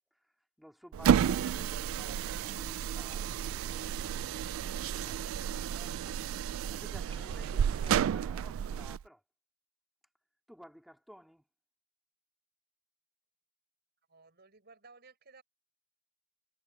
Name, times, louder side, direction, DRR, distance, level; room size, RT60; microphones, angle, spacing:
voice 1, 0.1-9.2 10.5-11.5, equal, ahead, 3.5 m, -55 dB
sound 1, 0.9-9.0, right 8 dB, 70° right, 0.3 m, -31 dB
Sliding door, 3.0-5.3 7.1-8.1, right 2 dB, 30° right, 2.4 m, -54 dB
voice 2, 14.1-15.4, right 4 dB, 50° right, 6.6 m, -57 dB
head